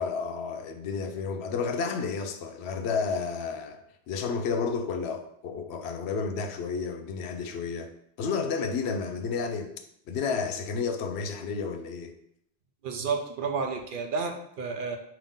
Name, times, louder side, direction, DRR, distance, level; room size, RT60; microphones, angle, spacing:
voice 1, 0.0-7.9 8.2-9.7 10.1-12.1, left 5 dB, 85° left, 0.8 m, -31 dB
voice 2, 12.8-15.0, right 5 dB, 60° right, 0.7 m, -31 dB
5.4 x 2.7 x 3.6 m
omnidirectional pair, 1.1 m